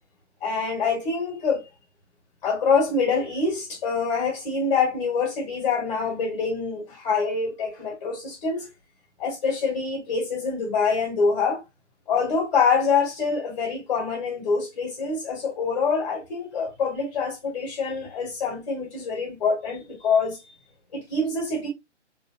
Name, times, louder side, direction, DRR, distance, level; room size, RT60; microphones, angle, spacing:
voice 1, 0.4-1.7 2.4-8.7 9.2-11.6 12.1-20.4 20.9-21.7, left 5 dB, 35° left, 1.6 m, -25 dB
3.8 x 3.2 x 2.7 m
figure-of-eight pair, 140°, 36 cm